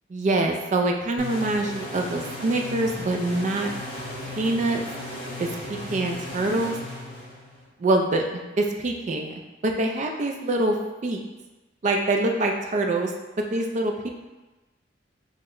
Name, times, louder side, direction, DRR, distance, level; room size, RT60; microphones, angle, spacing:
voice 1, 0.1-3.7 4.4-4.8 5.4-6.8 7.8-9.3 9.6-10.8 11.0-11.2 11.8-13.1 13.5-14.1, right 2 dB, 40° right, 3 dB, 0.3 m, -25 dB
sound 1, 1.2-7.7, left 1 dB, 25° left, 0.6 m, -36 dB
3.0 x 2.1 x 3.7 m, 1.1 s
head